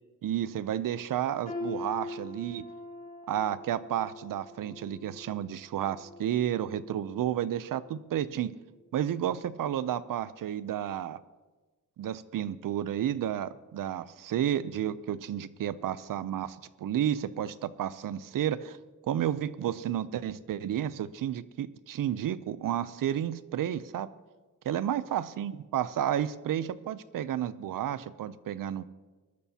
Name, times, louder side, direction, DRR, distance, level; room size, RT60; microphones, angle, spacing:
voice 1, 0.2-2.6 3.3-8.5 8.9-11.2 12.0-18.8 19.1-24.1 24.7-28.8, right 10 dB, 80° right, 16 dB, 0.6 m, -31 dB
sound 1, 1.5-7.4 7.8-8.0 8.8-8.9, left 2 dB, 25° left, 2.1 m, -43 dB
20.0 x 12.5 x 2.8 m, 1.3 s
wide cardioid pair, 105°, 33 cm